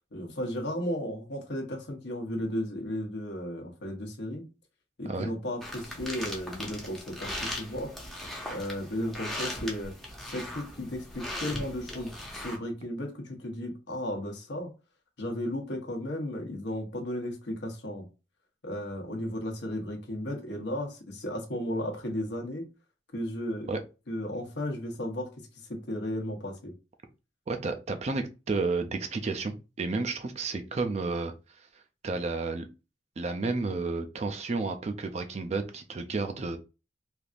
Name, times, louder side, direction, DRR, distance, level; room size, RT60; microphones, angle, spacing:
voice 1, 0.1-4.4 5.0-7.9 8.5-9.9 10.3-14.7 15.2-18.1 18.6-22.6 23.1-23.7 24.1-26.7, left 1 dB, 70° left, 0.9 m, -34 dB
sound 1, 5.6-12.6, left 1 dB, ahead, 0.7 m, -38 dB
voice 2, 27.5-31.3 32.0-32.7 33.2-36.6, right 3 dB, 35° right, 0.4 m, -31 dB
3.3 x 2.5 x 2.4 m
head